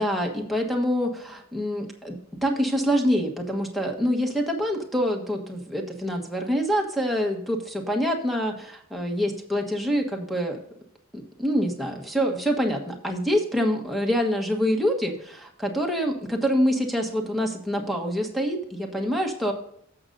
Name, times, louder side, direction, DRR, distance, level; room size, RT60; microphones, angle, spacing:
voice 1, 0.0-10.6 11.1-19.5, equal, ahead, 3 dB, 1.3 m, -26 dB
16.0 x 6.5 x 2.7 m, 0.70 s
head